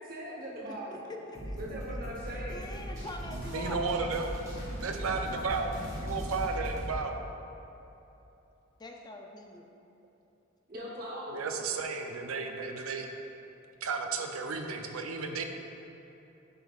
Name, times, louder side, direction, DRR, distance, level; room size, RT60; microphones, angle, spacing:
voice 1, 0.0-1.0 1.5-2.6 10.7-11.5, equal, 45° right, -4 dB, 0.9 m, -40 dB
voice 2, 0.9-1.6 2.2-3.9 8.8-9.7, left 1 dB, 20° left, 2 dB, 0.4 m, -44 dB
sound 1, 1.3-7.0, equal, 15° right, 1.2 m, -38 dB
voice 3, 3.3-4.4 4.8-7.2 11.3-13.1 13.8-15.4, right 4 dB, 90° right, 4 dB, 0.6 m, -33 dB
9.1 x 5.5 x 2.4 m, 3.0 s
head